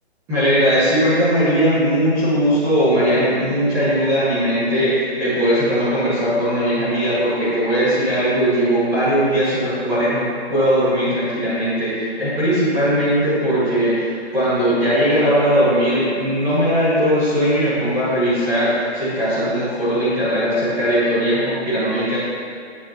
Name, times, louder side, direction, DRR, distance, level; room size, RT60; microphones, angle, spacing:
voice 1, 0.3-22.2, equal, 10° right, -14 dB, 2.0 m, -19 dB
8.8 x 8.7 x 3.0 m, 2.3 s
hypercardioid pair, 170°, 33 cm